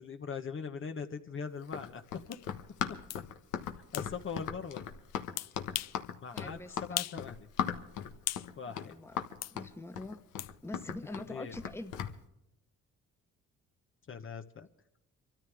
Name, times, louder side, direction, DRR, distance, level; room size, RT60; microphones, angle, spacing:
voice 1, 0.0-2.0 3.6-4.8 6.2-7.5 8.6-8.9 11.3-11.5 14.1-14.7, left 6 dB, 45° left, 6 dB, 1.0 m, -41 dB
Run, 1.6-12.2, left 9 dB, 85° left, 1.3 m, -38 dB
sound 1, 2.3-2.4 3.1-3.2 3.9-4.1 5.4-6.0 6.4-6.5 7.0-7.2 7.6-8.5 9.4-9.6 10.4-10.5, left 14 dB, 60° left, 0.4 m, -37 dB
voice 2, 6.3-7.0 8.7-10.2 10.6-12.0, left 2 dB, 10° left, 7 dB, 1.2 m, -44 dB
25.5 x 13.5 x 3.5 m, 0.88 s
cardioid pair, 90°, 30 cm